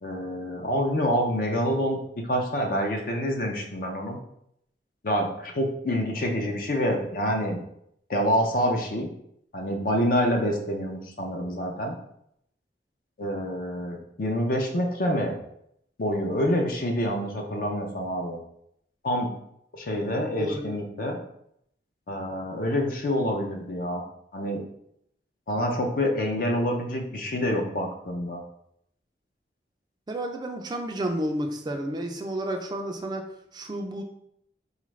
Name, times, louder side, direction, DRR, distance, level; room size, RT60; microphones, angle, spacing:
voice 1, 0.0-2.0 2.2-4.2 5.0-7.6 8.1-9.1 9.5-11.9 13.2-15.4 16.0-18.4 19.0-19.3 19.7-21.2 22.1-24.0 24.3-24.6 25.5-28.4, equal, 50° left, 2 dB, 0.5 m, -27 dB
voice 2, 20.4-20.8 30.1-33.3 33.5-34.0, right 1 dB, 25° right, 4 dB, 0.3 m, -31 dB
4.1 x 2.4 x 3.1 m, 0.74 s
head